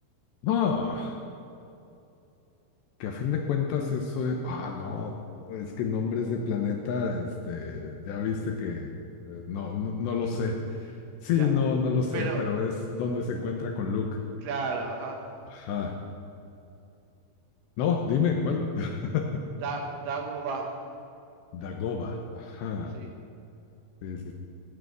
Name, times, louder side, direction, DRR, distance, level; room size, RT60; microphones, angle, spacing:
voice 1, 0.4-1.2 3.0-8.9 9.2-10.9 11.2-14.2 15.5-15.9 17.8-19.4 21.5-22.9 24.0-24.3, left 5 dB, 75° left, 2 dB, 2.8 m, -29 dB
voice 2, 12.1-12.4 14.4-15.2 19.6-20.8 22.9-23.1, right 4 dB, 70° right, 3 dB, 3.3 m, -33 dB
16.5 x 9.0 x 9.3 m, 2.7 s
omnidirectional pair, 6.0 m